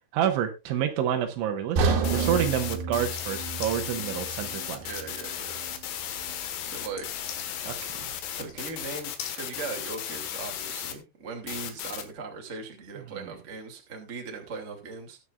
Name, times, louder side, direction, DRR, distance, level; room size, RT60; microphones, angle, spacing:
voice 1, 0.1-4.8 7.6-7.9, right 9 dB, 85° right, 5 dB, 3.6 m, -28 dB
sound 1, 1.8-5.8 6.2-6.3 6.9-7.0, right 4 dB, 70° right, 3.5 m, -30 dB
sound 2, 2.0-10.9 11.5-12.0, left 10 dB, 90° left, 3.9 m, -35 dB
sound 3, 3.2-8.7 9.2-9.4, left 7 dB, 75° left, 4.2 m, -44 dB
voice 2, 4.8-5.6 6.7-7.1 8.4-15.2, right 4 dB, 30° right, 2 dB, 1.4 m, -39 dB
20.5 x 7.3 x 2.4 m, 0.26 s
omnidirectional pair, 5.3 m